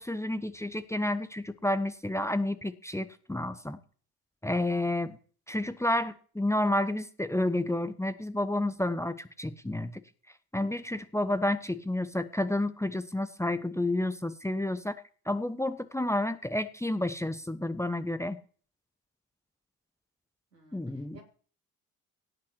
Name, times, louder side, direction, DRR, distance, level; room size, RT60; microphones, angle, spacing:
voice 1, 0.0-3.8 4.4-5.2 5.5-10.0 10.5-14.9 15.3-18.4 20.7-21.2, left 1 dB, 5° left, 13 dB, 1.0 m, -30 dB
voice 2, 20.5-21.2, right 6 dB, 85° right, -1 dB, 3.1 m, -55 dB
17.0 x 5.8 x 6.3 m, 0.43 s
figure-of-eight pair, 45°, 47 cm